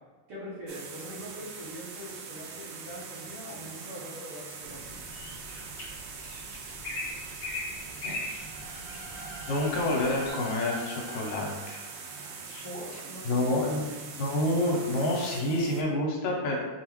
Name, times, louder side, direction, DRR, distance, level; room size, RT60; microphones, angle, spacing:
voice 1, 0.3-5.0 12.2-14.0, equal, 60° right, -9 dB, 1.8 m, -43 dB
sound 1, 0.7-15.8, right 5 dB, 80° right, 1.7 m, -43 dB
sound 2, 4.6-10.3, left 2 dB, 55° left, 1.2 m, -40 dB
sound 3, 8.2-13.0, right 1 dB, 40° right, 1.7 m, -45 dB
voice 2, 9.5-11.8 12.5-12.6 13.2-13.8 14.2-16.6, left 1 dB, 80° left, -2 dB, 2.0 m, -28 dB
5.3 x 2.4 x 3.0 m, 1.3 s
omnidirectional pair, 3.3 m